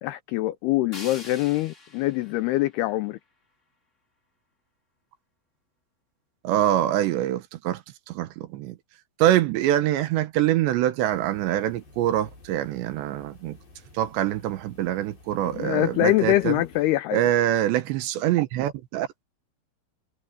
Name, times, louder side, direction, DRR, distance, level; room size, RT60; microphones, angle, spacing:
voice 1, 0.0-3.2 15.4-17.2, left 16 dB, 85° left, 2.2 m, -24 dB
sound 1, 0.9-3.9, left 2 dB, 20° left, 2.6 m, -46 dB
voice 2, 6.4-7.8 8.1-8.8 9.2-13.6 13.9-16.6 17.1-19.1, right 12 dB, 75° right, 3.2 m, -24 dB
sound 2, 11.1-16.8, left 2 dB, 50° left, 9.5 m, -51 dB
omnidirectional pair, 5.4 m